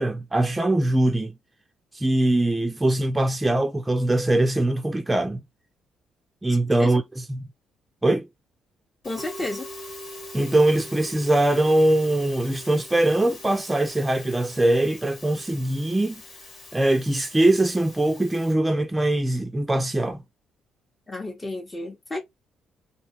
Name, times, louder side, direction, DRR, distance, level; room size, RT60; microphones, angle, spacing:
voice 1, 0.0-1.3 1.9-5.4 6.4-7.0 7.3-7.4 8.0-8.3 10.3-16.2 16.7-20.2, right 1 dB, 15° right, 0.4 m, -22 dB
Musical instrument, 9.0-18.5, left 1 dB, 65° left, 1.3 m, -42 dB
voice 2, 9.0-9.7 21.1-22.2, left 2 dB, 25° left, 0.7 m, -32 dB
2.7 x 2.2 x 2.8 m
hypercardioid pair, 55°, 0 cm